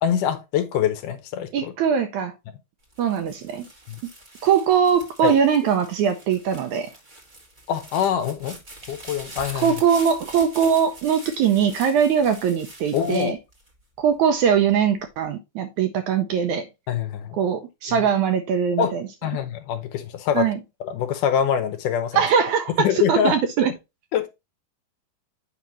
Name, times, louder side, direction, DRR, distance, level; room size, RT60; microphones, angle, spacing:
voice 1, 0.0-1.7 3.9-4.0 5.2-5.4 7.7-8.6 8.9-9.7 12.9-13.4 16.9-17.4 17.9-18.1 18.8-20.5 20.8-22.2 22.8-23.4 24.1-24.3, left 8 dB, 75° left, 2.2 m, -24 dB
voice 2, 1.5-2.3 3.0-3.7 4.4-6.9 9.6-13.4 14.0-16.7 17.4-19.0 20.4-20.6 22.1-23.7, right 7 dB, 75° right, 1.8 m, -21 dB
sound 1, 2.8-14.2 14.7-15.3, right 1 dB, 40° right, 0.6 m, -43 dB
8.3 x 5.2 x 3.0 m
omnidirectional pair, 4.0 m